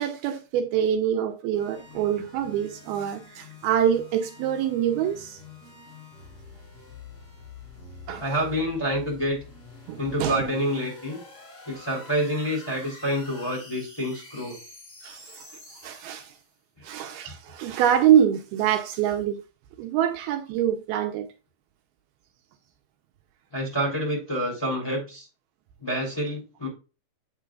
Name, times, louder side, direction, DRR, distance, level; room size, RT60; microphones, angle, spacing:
voice 1, 0.0-5.4 8.1-8.3 9.9-10.4 15.0-15.5 15.8-16.3 16.8-19.4 19.8-21.3, right 9 dB, 80° right, 2.6 m, -25 dB
sound 1, 1.5-16.5, left 4 dB, 25° left, 5.0 m, -47 dB
voice 2, 8.2-9.4 10.0-11.2 11.6-14.6 23.5-25.2 25.8-26.7, equal, 5° left, 2.8 m, -27 dB
8.3 x 8.2 x 2.4 m
omnidirectional pair, 4.6 m